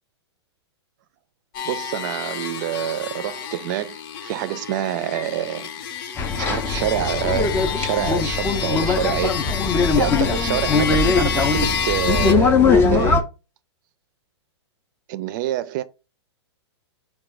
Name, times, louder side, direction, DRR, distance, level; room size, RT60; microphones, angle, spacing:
sound 1, 1.5-12.3, left 7 dB, 50° left, 0.7 m, -29 dB
voice 1, 1.6-4.0 4.2-5.7 6.4-9.4 9.9-13.3 15.1-15.8, right 12 dB, 45° right, 0.4 m, -27 dB
sound 2, 6.2-13.2, left 4 dB, 15° left, 0.4 m, -20 dB
4.7 x 2.3 x 4.7 m
hypercardioid pair, 145°, 14 cm